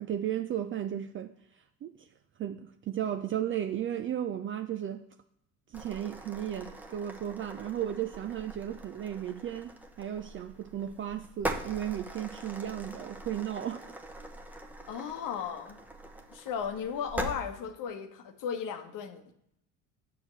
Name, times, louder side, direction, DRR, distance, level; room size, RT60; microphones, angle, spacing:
voice 1, 0.0-2.1 2.4-5.0 5.7-13.9, right 10 dB, 30° right, 7 dB, 0.4 m, -35 dB
sound 1, 5.7-17.4, right 1 dB, 5° right, 0.8 m, -42 dB
voice 2, 14.9-15.8 16.3-19.3, left 7 dB, 55° left, 8 dB, 1.0 m, -36 dB
7.4 x 6.1 x 3.2 m, 0.76 s
hypercardioid pair, 70°, 39 cm